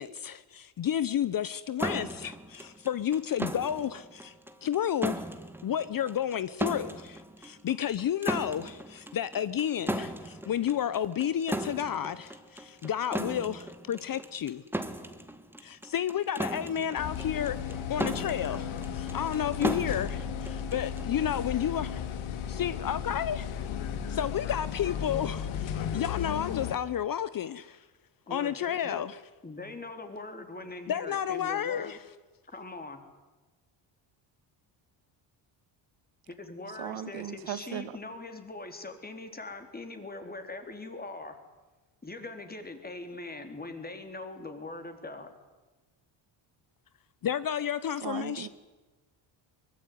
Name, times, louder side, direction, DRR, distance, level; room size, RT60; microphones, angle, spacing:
voice 1, 0.0-4.3 4.6-5.2 5.6-14.6 15.6-22.0 22.5-23.5 24.1-27.9 28.3-29.2 30.9-32.0 47.2-48.5, left 9 dB, 45° left, 0.9 m, -31 dB
sound 1, 1.8-21.2, right 1 dB, 5° right, 2.0 m, -37 dB
sound 2, 17.0-26.7, left 8 dB, 85° left, 2.6 m, -35 dB
voice 2, 28.3-29.0 29.4-32.0 32.5-33.0 36.3-41.4 42.0-45.3, left 2 dB, 20° left, 3.9 m, -42 dB
voice 3, 36.8-37.9 48.0-48.5, right 10 dB, 65° right, 2.0 m, -37 dB
23.5 x 21.5 x 9.5 m
cardioid pair, 110°, 47 cm